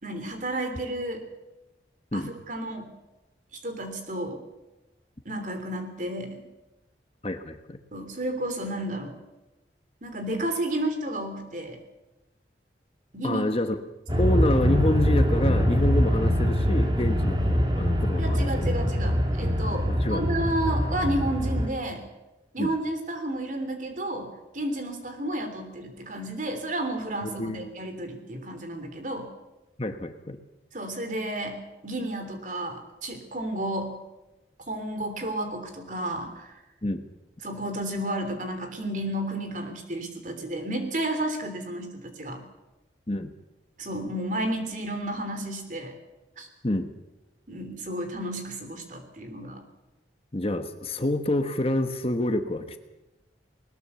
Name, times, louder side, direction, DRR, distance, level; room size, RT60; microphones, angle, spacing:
voice 1, 0.0-1.2 2.1-2.9 3.6-4.4 5.2-6.4 7.9-9.2 10.0-11.8 13.1-13.4 14.1-14.3 18.2-22.0 22.5-29.3 30.7-34.0 34.7-36.5 37.4-42.4 43.8-45.9 46.4-46.5 47.5-49.6, right 1 dB, 45° right, 7 dB, 3.3 m, -32 dB
voice 2, 7.2-7.8 13.2-13.8 14.2-18.6 19.9-20.2 22.6-22.7 27.4-27.7 29.8-30.4 36.8-37.1 43.1-43.3 46.6-46.9 50.3-52.8, left 1 dB, 35° left, 8 dB, 1.2 m, -27 dB
sound 1, 14.1-21.7, equal, 25° right, 2.5 m, -24 dB
20.0 x 20.0 x 7.0 m, 1.0 s
head